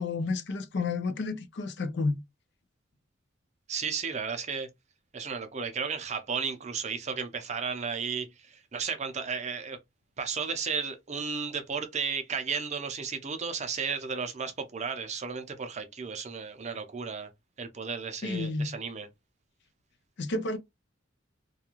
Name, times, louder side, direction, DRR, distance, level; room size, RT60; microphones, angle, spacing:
voice 1, 0.0-2.2 18.2-18.7 20.2-20.6, left 3 dB, 60° left, 0.5 m, -30 dB
voice 2, 3.7-4.7 5.1-9.8 10.2-17.3 17.6-19.1, right 5 dB, 35° right, 0.5 m, -34 dB
2.4 x 2.2 x 2.9 m
head